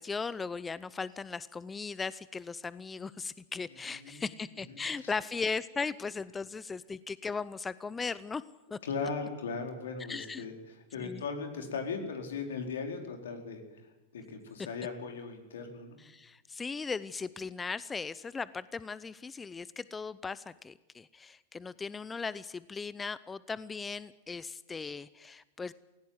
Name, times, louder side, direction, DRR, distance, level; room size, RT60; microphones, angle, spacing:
voice 1, 0.0-8.4 8.7-8.8 10.1-10.5 11.0-11.2 16.0-25.7, left 4 dB, 15° left, 18 dB, 0.6 m, -38 dB
voice 2, 3.9-4.2 4.7-5.1 8.8-10.5 10.9-13.6 14.1-16.0, left 5 dB, 85° left, 4 dB, 4.4 m, -38 dB
18.0 x 16.5 x 9.7 m, 1.1 s
hypercardioid pair, 115°, 0 cm